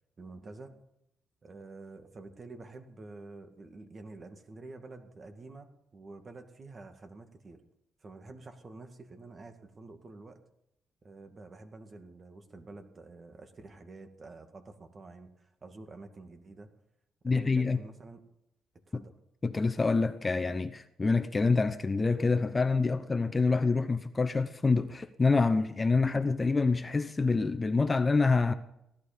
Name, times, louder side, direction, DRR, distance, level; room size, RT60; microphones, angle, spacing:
voice 1, 0.2-0.8 1.4-7.6 8.0-10.4 11.0-16.7 17.3-18.2 18.9-19.1, right 3 dB, 35° right, 2.2 m, -48 dB
voice 2, 17.2-17.8 19.4-28.5, left 4 dB, 25° left, 0.8 m, -26 dB
17.0 x 12.0 x 5.2 m
cardioid pair, 90°, 0 cm